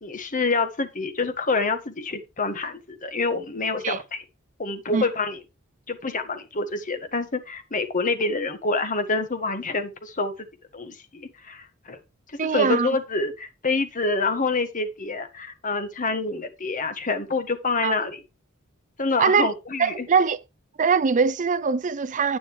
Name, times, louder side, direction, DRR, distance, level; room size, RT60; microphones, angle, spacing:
voice 1, 0.0-4.2 4.6-5.4 5.9-10.3 10.7-12.0 12.5-18.2 19.0-20.1, left 3 dB, 40° left, 1.5 m, -27 dB
voice 2, 12.4-12.9 17.8-18.0 19.2-19.5 19.8-20.4 20.8-22.4, right 5 dB, 35° right, 0.5 m, -22 dB
10.5 x 9.7 x 3.2 m
head